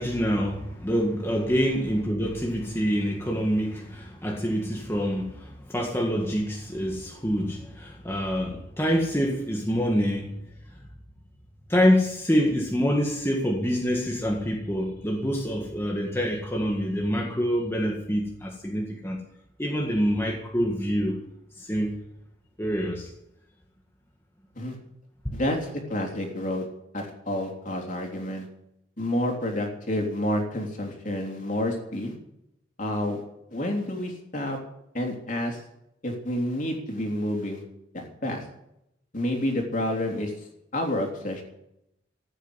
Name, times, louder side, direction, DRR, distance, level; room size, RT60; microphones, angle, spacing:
voice 1, 0.0-10.4 11.7-19.2 19.6-21.2 21.6-22.0 22.6-23.1 25.3-25.4, equal, 15° left, 1.8 m, -26 dB
voice 2, 25.3-26.6 26.9-28.5 29.0-32.1 32.8-33.2 33.5-34.6 34.9-35.6 36.0-37.6 37.9-38.4 39.1-40.3 40.7-41.4, left 1 dB, 45° left, 3.5 m, -29 dB
15.0 x 9.1 x 9.7 m
head